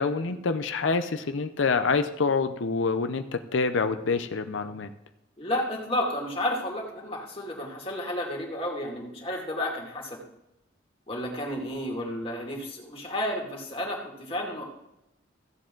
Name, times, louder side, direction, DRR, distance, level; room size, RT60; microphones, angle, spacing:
voice 1, 0.0-4.9, left 4 dB, 75° left, 9 dB, 0.6 m, -26 dB
voice 2, 5.4-10.2 11.1-14.6, left 1 dB, 30° left, -1 dB, 2.4 m, -32 dB
15.5 x 7.6 x 3.8 m, 0.86 s
head